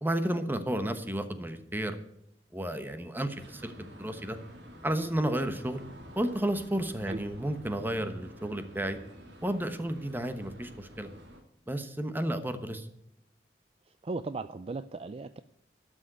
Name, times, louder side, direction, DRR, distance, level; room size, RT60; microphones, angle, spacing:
voice 1, 0.0-2.0 2.5-3.7 4.0-4.4 4.8-5.8 6.2-9.0 9.4-11.1 11.7-12.9, right 1 dB, 10° right, 9 dB, 1.1 m, -32 dB
sound 1, 3.4-11.4, equal, 85° right, 2.4 m, -50 dB
voice 2, 14.0-15.4, right 3 dB, 35° right, 12 dB, 0.4 m, -36 dB
12.5 x 6.4 x 8.0 m, 0.83 s
head